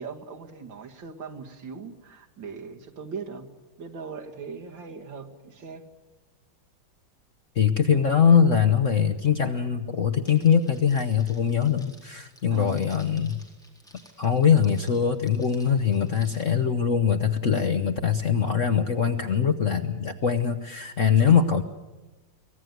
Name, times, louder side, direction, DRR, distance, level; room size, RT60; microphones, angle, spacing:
voice 1, 0.0-3.5 3.8-5.9 12.5-12.9 21.2-21.4, right 5 dB, 65° right, 3 dB, 2.5 m, -39 dB
voice 2, 7.5-13.4 14.2-21.6, left 7 dB, 50° left, 8 dB, 1.0 m, -22 dB
Crackle, 10.3-16.4, equal, ahead, 4.2 m, -55 dB
23.5 x 17.5 x 9.4 m, 1.1 s
omnidirectional pair, 2.2 m